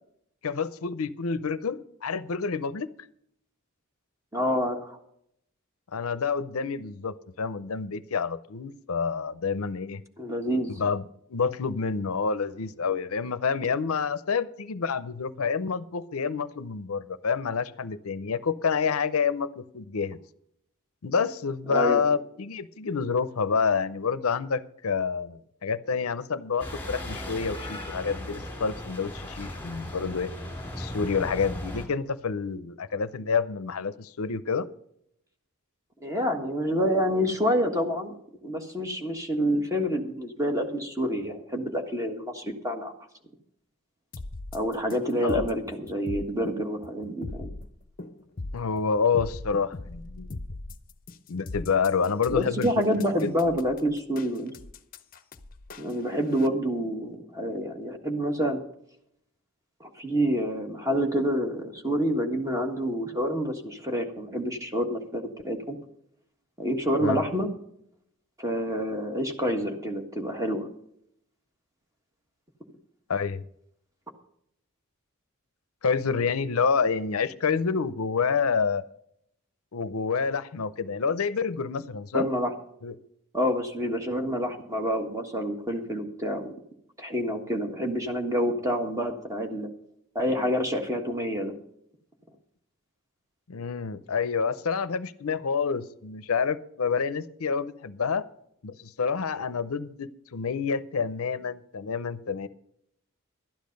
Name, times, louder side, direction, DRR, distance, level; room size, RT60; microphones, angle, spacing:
voice 1, 0.4-2.9 5.9-10.0 10.8-11.0 11.3-20.2 21.0-30.3 30.8-34.7 45.2-45.5 48.5-50.3 51.3-53.3 67.0-67.3 73.1-73.4 75.8-78.8 79.7-82.3 82.8-82.9 93.5-98.2 98.6-102.5, left 5 dB, 75° left, 15 dB, 0.6 m, -28 dB
voice 2, 4.3-5.0 10.2-10.8 21.7-22.0 36.0-38.1 38.4-42.9 44.5-47.5 52.3-54.5 55.8-58.6 59.8-65.8 66.6-67.5 68.4-70.7 82.1-82.5 83.3-86.5 87.0-89.7 90.1-91.5, equal, 15° right, 4 dB, 1.5 m, -28 dB
sound 1, 26.6-31.9, left 1 dB, 10° left, 2.7 m, -37 dB
sound 2, 44.1-56.5, left 2 dB, 40° left, 0.7 m, -40 dB
12.0 x 10.5 x 5.3 m, 0.72 s
head